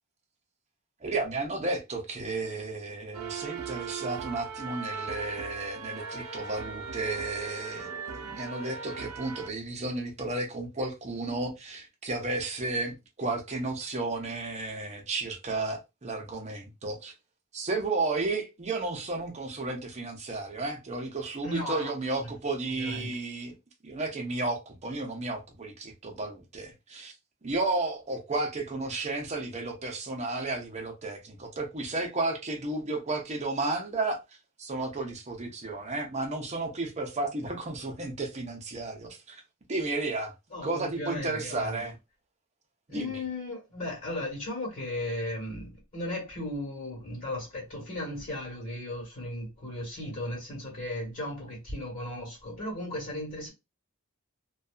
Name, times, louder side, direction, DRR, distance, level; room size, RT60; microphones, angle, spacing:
voice 1, 1.0-17.1 17.5-23.6 23.8-27.1 27.4-34.2 34.6-39.4 39.7-40.3 40.6-42.0 42.9-43.2, right 2 dB, 30° right, 0.6 m, -33 dB
sound 1, 3.1-9.5, right 5 dB, 90° right, 0.4 m, -39 dB
voice 2, 21.4-21.9 22.2-22.3 22.8-23.1 40.5-41.9 42.9-53.5, left 1 dB, 40° left, 1.2 m, -36 dB
2.7 x 2.3 x 2.3 m
head